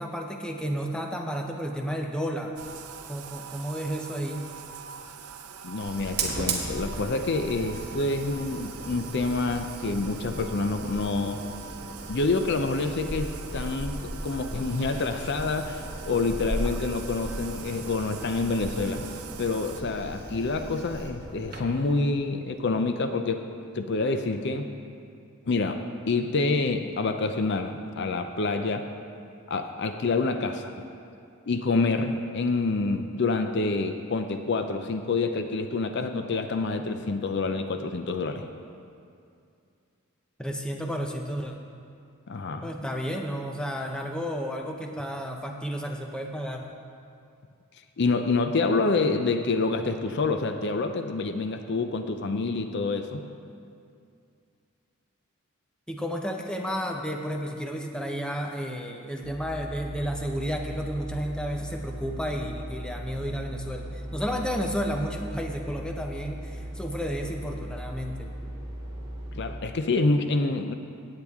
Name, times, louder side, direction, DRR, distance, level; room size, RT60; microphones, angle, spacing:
voice 1, 0.0-2.5 3.1-4.4 40.4-41.5 42.6-46.7 55.9-68.3, equal, 5° left, 2 dB, 0.7 m, -32 dB
Bathtub (filling or washing), 2.6-19.8, right 7 dB, 85° right, 0.6 m, -43 dB
voice 2, 5.6-11.4 12.1-23.4 23.7-24.7 25.5-28.9 29.5-30.7 31.5-38.5 42.3-42.7 48.0-53.2 69.3-70.7, left 3 dB, 50° left, 7 dB, 0.5 m, -27 dB
Fire, 5.8-21.9, right 2 dB, 45° right, 1.4 m, -37 dB
sound 1, 59.2-69.6, right 1 dB, 25° right, 2.8 m, -38 dB
16.5 x 8.6 x 3.6 m, 2.4 s
head